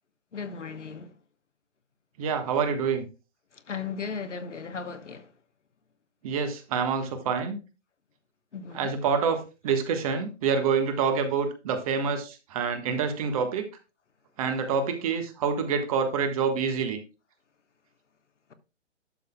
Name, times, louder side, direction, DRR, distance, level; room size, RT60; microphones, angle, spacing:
voice 1, 0.3-1.1 3.5-5.3 8.5-8.9, left 5 dB, 75° left, 1.3 m, -36 dB
voice 2, 2.2-3.0 6.2-7.6 8.7-13.7 14.4-17.0, right 6 dB, 30° right, 1.4 m, -27 dB
12.0 x 6.8 x 2.3 m
figure-of-eight pair, 135°, 36 cm